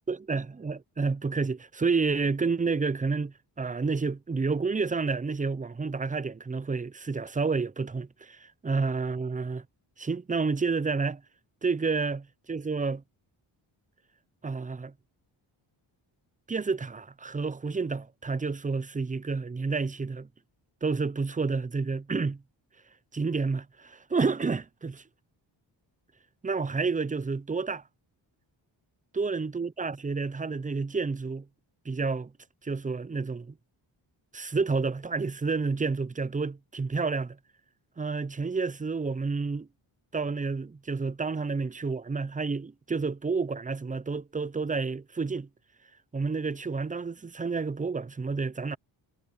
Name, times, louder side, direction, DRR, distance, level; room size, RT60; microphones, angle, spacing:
voice 1, 0.1-9.6 10.0-11.2 11.6-13.0 14.4-14.9 16.5-20.3 20.8-22.4 23.1-25.0 26.4-27.8 29.1-31.5 31.8-32.3 32.6-33.5 34.3-37.4 38.0-39.7 40.1-45.5 46.1-48.8, right 4 dB, 15° right, 0.6 m, -30 dB
cardioid pair, 75°, 46 cm